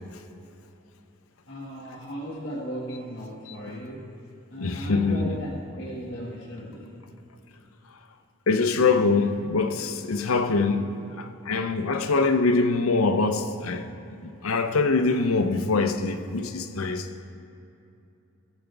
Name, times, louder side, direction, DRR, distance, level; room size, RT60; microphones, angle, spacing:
voice 1, 1.5-4.1 4.5-6.9, equal, 60° left, 1.7 m, -36 dB
voice 2, 4.6-5.3 8.5-13.9 14.2-17.1, left 3 dB, 85° left, 0.6 m, -24 dB
18.0 x 8.1 x 3.4 m
head